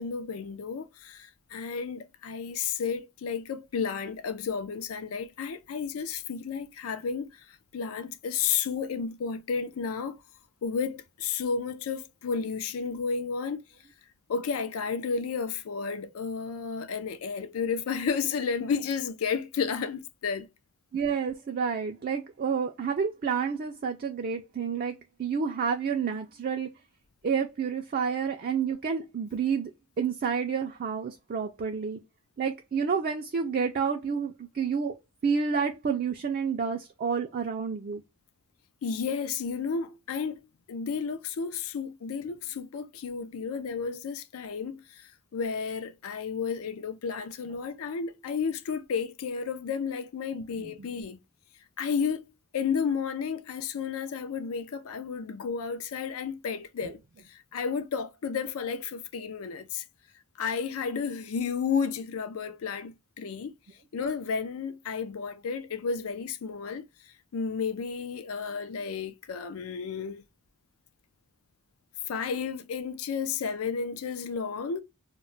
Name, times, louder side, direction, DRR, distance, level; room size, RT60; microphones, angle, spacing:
voice 1, 0.0-10.2 10.6-13.6 14.3-20.5 38.8-40.4 40.7-51.2 51.8-52.2 52.5-57.0 57.3-59.8 60.4-63.5 63.9-66.9 67.3-70.2 72.1-74.8, left 6 dB, 70° left, 0.4 m, -32 dB
voice 2, 20.9-24.9 25.2-26.7 27.2-29.7 30.0-32.0 32.4-34.9 35.2-38.0 50.6-50.9 56.8-56.9, right 6 dB, 40° right, 0.3 m, -29 dB
2.2 x 2.1 x 3.8 m
head